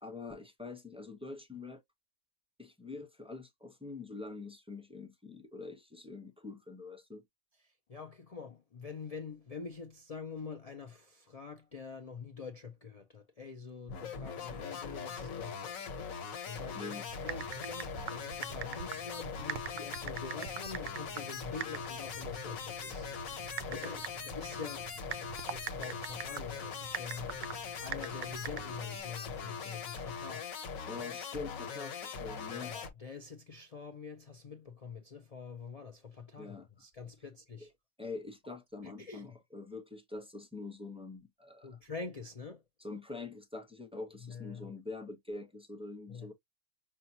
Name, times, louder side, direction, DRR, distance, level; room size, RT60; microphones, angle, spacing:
voice 1, 0.0-1.8 2.6-7.2 16.7-17.1 30.8-32.7 36.4-36.7 37.6-37.7 38.0-41.7 42.8-46.3, left 3 dB, 10° right, 0.4 m, -45 dB
voice 2, 7.6-24.9 25.5-30.5 32.5-37.7 38.8-39.4 41.6-42.6 44.2-44.7 46.1-46.3, left 5 dB, 55° left, 0.4 m, -46 dB
sound 1, 13.9-32.9, left 6 dB, 80° left, 1.3 m, -41 dB
Typing, 17.1-29.0, right 9 dB, 65° right, 0.6 m, -44 dB
5.5 x 2.3 x 2.7 m
omnidirectional pair, 1.4 m